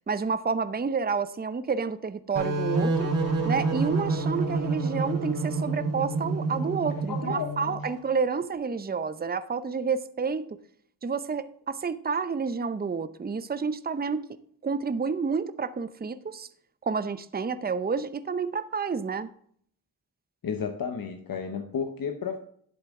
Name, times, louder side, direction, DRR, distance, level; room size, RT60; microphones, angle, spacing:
voice 1, 0.0-3.1 3.4-10.6 11.0-14.3 14.6-16.5 16.8-19.3, right 5 dB, 25° right, 13 dB, 0.6 m, -29 dB
sound 1, 2.4-7.9, right 3 dB, 60° right, 3.2 m, -28 dB
voice 2, 7.1-7.5 7.8-7.9 20.4-22.4, left 6 dB, 70° left, 6 dB, 1.0 m, -32 dB
11.0 x 8.0 x 3.7 m, 0.62 s
cardioid pair, 55°, 35 cm